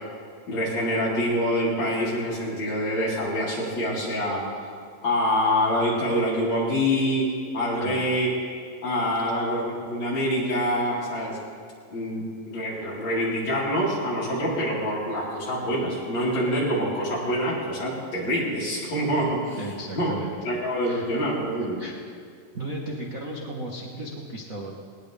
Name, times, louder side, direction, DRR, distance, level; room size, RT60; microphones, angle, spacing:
voice 1, 0.5-4.5 5.0-8.3 8.8-11.4 11.9-19.6 19.9-20.1 20.5-21.8, equal, 50° left, -7 dB, 5.5 m, -26 dB
voice 2, 19.6-20.5 20.8-21.2 21.6-21.9 22.5-24.7, right 1 dB, 45° right, -2 dB, 1.0 m, -35 dB
20.0 x 19.5 x 3.5 m, 2.1 s
omnidirectional pair, 3.9 m